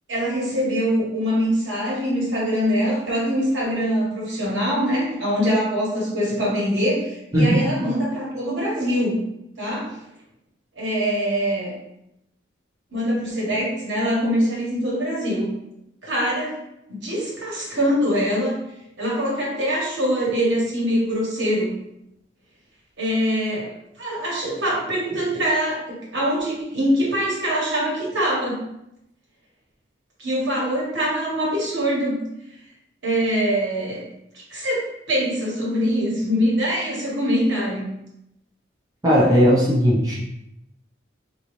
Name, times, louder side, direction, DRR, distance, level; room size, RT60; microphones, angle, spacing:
voice 1, 0.1-9.2 9.6-10.0 10.8-11.7 12.9-15.5 16.0-16.6 16.9-18.6 19.0-21.7 23.0-28.6 30.2-32.2 33.0-34.0 34.5-37.9, equal, 70° right, -5 dB, 1.4 m, -23 dB
voice 2, 39.0-40.1, equal, 20° right, -6 dB, 0.7 m, -17 dB
3.9 x 2.6 x 3.1 m, 0.83 s
head